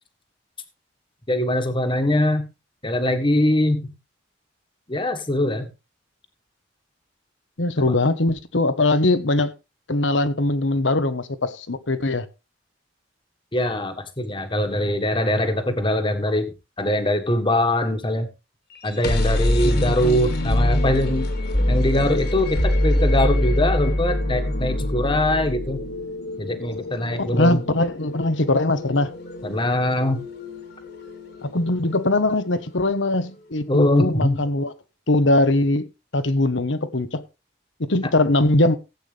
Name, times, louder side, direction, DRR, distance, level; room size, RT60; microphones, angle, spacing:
voice 1, 1.3-2.5 2.8-3.9 4.9-5.7 7.8-7.9 13.5-18.3 18.8-21.3 21.7-25.8 26.4-27.6 29.4-30.2 33.7-34.4, left 1 dB, 25° left, 1.6 m, -22 dB
voice 2, 7.6-9.5 9.9-12.3 19.7-20.8 27.2-29.1 31.4-34.7 35.1-35.9 36.1-37.2 37.8-38.7, left 2 dB, 75° left, 1.2 m, -21 dB
sound 1, 18.8-32.6, left 1 dB, 55° left, 2.4 m, -25 dB
16.0 x 8.5 x 3.4 m
head